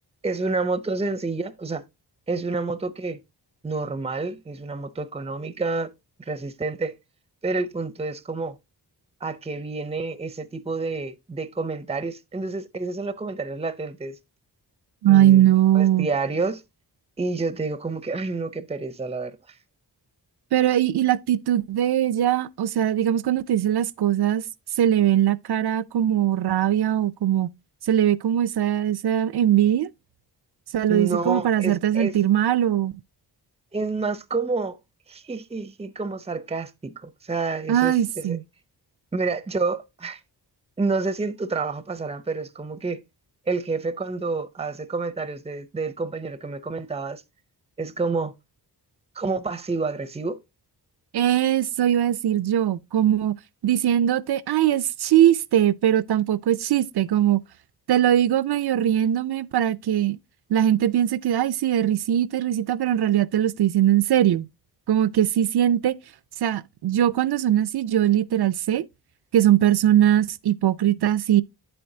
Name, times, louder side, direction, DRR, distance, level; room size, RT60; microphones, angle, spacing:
voice 1, 0.2-1.8 2.3-3.2 3.6-5.9 6.2-6.9 7.4-8.6 9.2-14.2 15.1-15.4 15.7-16.6 17.2-19.4 30.9-32.1 33.7-34.8 35.1-38.4 39.1-40.2 40.8-43.0 43.5-47.2 47.8-48.3 49.2-50.4, right 3 dB, 15° right, 0.6 m, -29 dB
voice 2, 15.0-16.1 20.5-24.4 24.8-27.5 27.9-29.9 30.7-32.9 37.7-38.4 51.1-53.3 53.6-57.4 57.9-60.2 60.5-64.5 64.9-65.9 66.4-68.9 69.3-71.4, right 11 dB, 65° right, 0.5 m, -21 dB
8.4 x 7.8 x 2.7 m
wide cardioid pair, 80°, 41 cm